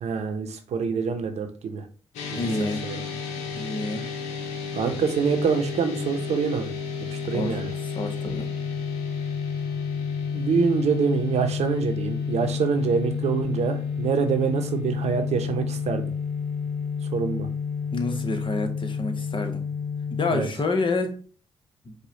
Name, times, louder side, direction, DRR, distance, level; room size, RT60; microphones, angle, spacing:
voice 1, 0.0-1.8 2.3-3.0 4.7-6.7 7.1-7.7 10.3-16.1 17.1-17.5 20.3-20.5, right 6 dB, 65° right, 0.8 m, -26 dB
sound 1, 2.1-20.5, left 6 dB, 85° left, 0.7 m, -30 dB
voice 2, 2.3-2.9 3.5-4.1 7.3-8.5 17.9-19.6 20.1-21.2 21.8-21.9, left 2 dB, 45° left, 1.0 m, -28 dB
4.9 x 2.3 x 4.0 m
hypercardioid pair, 40°, 12 cm